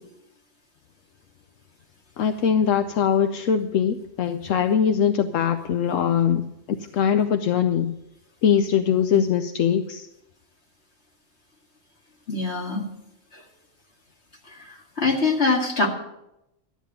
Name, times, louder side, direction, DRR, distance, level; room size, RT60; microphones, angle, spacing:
voice 1, 2.2-8.0 8.4-10.1, left 8 dB, 75° left, 8 dB, 1.0 m, -22 dB
voice 2, 12.3-12.9 13.3-13.4 14.5-15.9, left 3 dB, 55° left, 1 dB, 2.2 m, -24 dB
12.5 x 7.3 x 8.7 m, 0.86 s
omnidirectional pair, 1.4 m